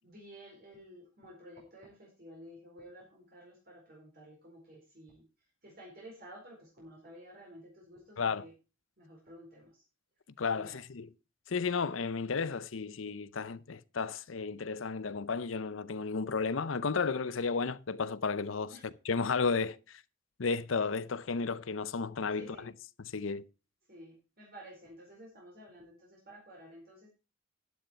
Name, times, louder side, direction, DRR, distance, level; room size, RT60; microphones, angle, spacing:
voice 1, 0.0-5.2 5.6-8.5 9.0-9.8 10.5-10.8 18.7-18.8 22.3-22.7 23.9-27.1, equal, 50° right, 4.5 m, -52 dB
voice 2, 10.4-11.1 11.5-18.7 19.1-20.0 20.4-22.7 23.1-23.4, left 5 dB, 90° left, 0.7 m, -33 dB
11.5 x 9.5 x 4.4 m
head